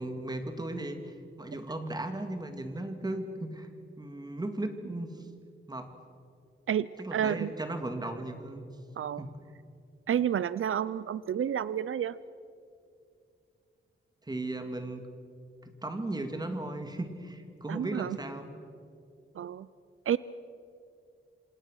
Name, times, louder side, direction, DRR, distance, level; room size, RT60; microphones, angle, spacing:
voice 1, 0.0-3.7 4.0-5.3 5.7-5.9 7.0-8.6 9.2-9.3 14.3-15.0 15.6-18.5, right 2 dB, 20° right, 6 dB, 2.1 m, -36 dB
voice 2, 6.7-7.5 9.0-9.2 10.1-12.2 17.7-18.2 19.3-19.7 20.1-20.2, right 9 dB, 75° right, 17 dB, 0.5 m, -30 dB
27.5 x 27.0 x 6.4 m, 2.5 s
wide cardioid pair, 170°, 21 cm